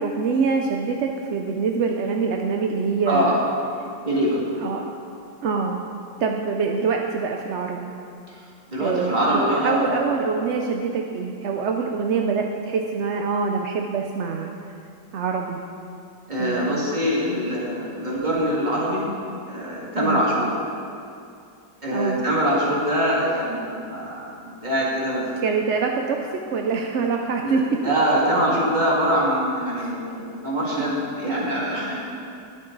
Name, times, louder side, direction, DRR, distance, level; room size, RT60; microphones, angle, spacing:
voice 1, 0.0-3.4 4.6-4.9 5.4-5.8 6.2-7.9 8.8-14.5 15.1-15.6 16.4-16.8 20.0-20.2 21.9-22.2 25.4-26.2 26.5-27.6 29.8-29.9, right 5 dB, 60° right, 2 dB, 0.7 m, -25 dB
voice 2, 3.1-3.4 4.0-4.4 8.3-10.3 16.3-19.0 19.5-20.5 21.8-25.3 27.4-32.0, equal, 25° right, -5 dB, 2.5 m, -24 dB
20.5 x 7.6 x 4.0 m, 2.5 s
omnidirectional pair, 1.8 m